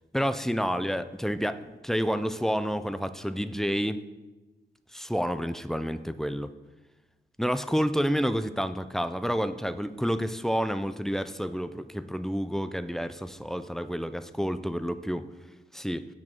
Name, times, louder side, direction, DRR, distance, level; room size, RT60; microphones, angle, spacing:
voice 1, 0.1-4.0 4.9-6.5 7.4-15.3 15.7-16.1, equal, ahead, 11 dB, 0.3 m, -29 dB
8.7 x 6.2 x 4.3 m, 1.1 s
wide cardioid pair, 120°, 19 cm